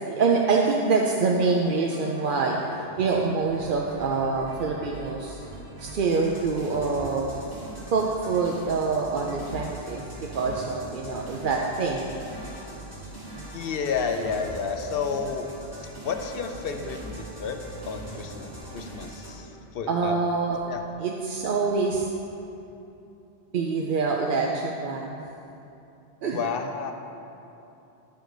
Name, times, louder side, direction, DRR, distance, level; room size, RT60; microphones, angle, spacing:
voice 1, 0.1-2.6 3.0-5.4 5.8-7.3 7.9-12.1 19.9-20.6 21.0-22.1 23.5-25.2 26.2-26.4, right 4 dB, 55° right, 0 dB, 0.7 m, -25 dB
sound 1, 1.2-19.3, right 1 dB, 75° right, 2.6 m, -41 dB
voice 2, 13.5-15.5 15.8-17.6 17.9-20.2 20.7-20.8 26.3-26.9, left 5 dB, 65° left, 5 dB, 0.8 m, -31 dB
11.5 x 4.8 x 5.1 m, 2.8 s
omnidirectional pair, 1.1 m